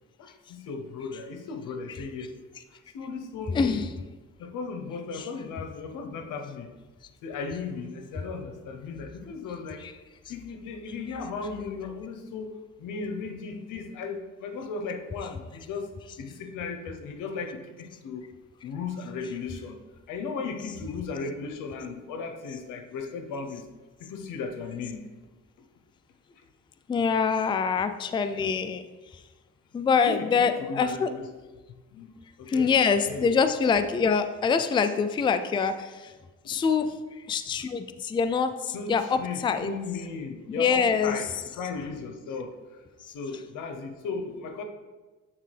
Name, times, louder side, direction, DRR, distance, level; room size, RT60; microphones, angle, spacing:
voice 1, 0.2-2.4 2.7-3.9 4.4-6.7 7.2-9.9 10.3-15.9 16.2-18.3 18.6-19.8 20.1-23.6 24.0-25.1 26.4-26.5 30.0-31.3 31.7-33.4 36.4-36.6 38.7-42.8 43.1-44.6, left 4 dB, 85° left, 5 dB, 0.8 m, -36 dB
voice 2, 3.5-3.9 5.1-5.3 9.8-9.9 26.9-28.8 29.1-29.2 29.7-31.1 32.5-36.1 36.5-36.9 37.3-39.7 40.5-41.2, left 5 dB, 15° left, 9 dB, 0.3 m, -25 dB
8.9 x 3.7 x 3.3 m, 1.2 s
cardioid pair, 90°, 30 cm